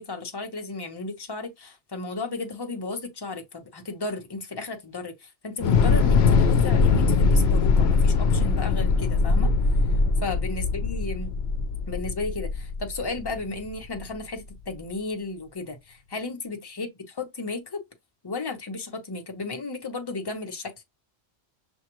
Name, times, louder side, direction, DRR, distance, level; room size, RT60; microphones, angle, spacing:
voice 1, 0.0-5.2 5.4-9.5 10.2-11.3 11.9-16.9 17.2-17.8 18.2-20.7, left 3 dB, 25° left, 0.8 m, -34 dB
Thunder / Explosion, 5.6-13.8, left 4 dB, 70° left, 0.8 m, -21 dB
6.2 x 2.3 x 3.0 m
omnidirectional pair, 1.1 m